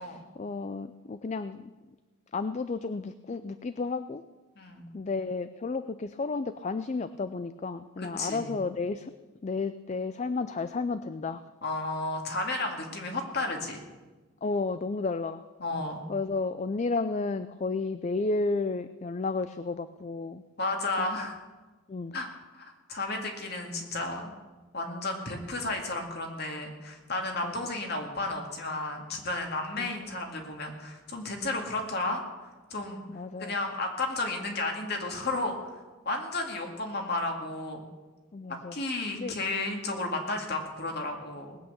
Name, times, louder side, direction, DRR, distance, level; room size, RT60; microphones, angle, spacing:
voice 1, 0.0-1.7 2.3-4.2 4.9-9.1 9.4-11.4 14.4-15.5 16.1-20.4 21.0-21.1 21.9-22.2 27.4-27.5 29.8-29.9 33.1-33.6 38.3-38.8 39.1-39.4, left 3 dB, 35° left, 12 dB, 0.4 m, -32 dB
voice 2, 8.0-8.5 11.6-13.8 15.6-16.0 20.6-21.4 22.1-22.3 22.5-24.3 24.7-33.1 33.4-37.8 38.7-41.6, left 2 dB, 50° left, 2 dB, 2.2 m, -33 dB
19.0 x 8.7 x 7.0 m, 1.2 s
head